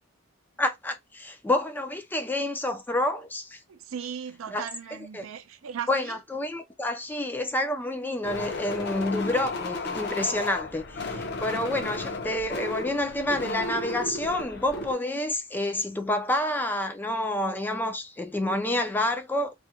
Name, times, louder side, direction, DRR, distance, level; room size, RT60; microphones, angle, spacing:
voice 1, 0.6-3.6 4.5-4.7 5.1-5.3 5.9-19.5, left 1 dB, 10° left, 0.3 m, -28 dB
voice 2, 3.7-6.2, right 8 dB, 80° right, 0.4 m, -37 dB
sound 1, 8.2-14.9, left 3 dB, 55° left, 0.6 m, -34 dB
2.4 x 2.1 x 2.7 m
head